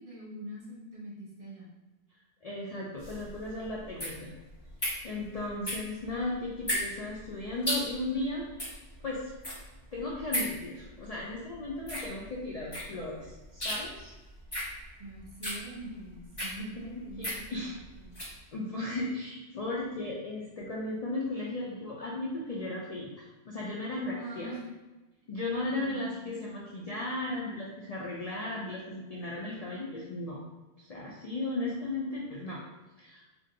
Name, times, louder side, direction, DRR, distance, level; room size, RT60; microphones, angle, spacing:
voice 1, 0.0-1.7 15.0-18.2 24.2-24.6 25.7-26.3, right 1 dB, 50° right, -5 dB, 1.1 m, -44 dB
voice 2, 2.4-4.3 5.0-8.4 9.0-9.2 9.9-14.1 16.6-16.7 16.9-17.7 18.5-24.5 25.3-30.4 30.8-32.6 33.0-33.2, left 2 dB, 55° left, -4 dB, 0.4 m, -36 dB
sound 1, 3.0-18.4, equal, 25° left, 1.0 m, -37 dB
2.6 x 2.6 x 3.9 m, 1.1 s
omnidirectional pair, 1.1 m